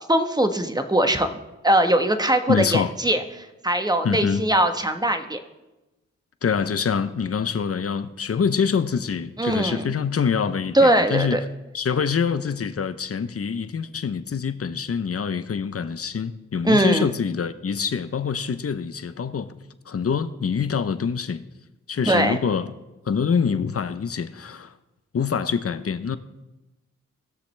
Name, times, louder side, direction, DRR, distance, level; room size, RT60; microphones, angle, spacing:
voice 1, 0.1-1.3 1.6-5.4 9.4-9.9 10.7-11.4 16.6-17.1 22.1-22.4, right 1 dB, 15° right, 1.2 m, -21 dB
voice 2, 2.5-2.9 4.0-4.4 6.4-11.4 11.7-19.6 19.9-21.4 21.9-22.7 23.1-24.7 25.1-26.2, left 6 dB, 50° left, 0.8 m, -25 dB
19.5 x 6.6 x 3.3 m
cardioid pair, 40°, 30 cm